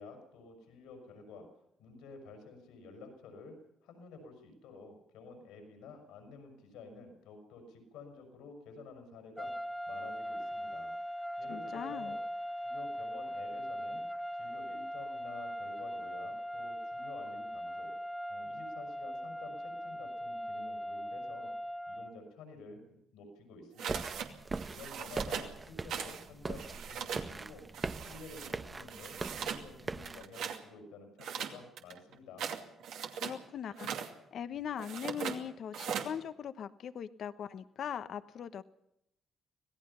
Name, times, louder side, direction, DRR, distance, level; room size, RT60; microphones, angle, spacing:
voice 1, 0.0-1.5 1.8-9.5 9.9-10.9 11.4-12.2 12.6-14.0 14.3-17.9 18.3-21.5 21.9-24.1 24.7-27.6 28.0-32.5, left 4 dB, 85° left, 5 dB, 6.1 m, -51 dB
sound 1, 9.4-22.2, equal, ahead, 2.0 m, -40 dB
voice 2, 11.5-12.2 33.2-33.9 34.3-38.6, left 8 dB, 65° left, 12 dB, 1.1 m, -40 dB
sound 2, 23.8-24.3 24.6-25.5 25.9-26.2 26.5-27.3 27.7-28.5 28.9-29.7 30.0-30.6 31.2-33.4 33.7-34.1 34.8-35.4 35.7-36.1, right 8 dB, 75° right, 2.5 m, -39 dB
sound 3, 23.9-30.2, right 3 dB, 35° right, 1.1 m, -41 dB
26.0 x 18.0 x 5.7 m, 0.80 s
supercardioid pair, 55°, 0 cm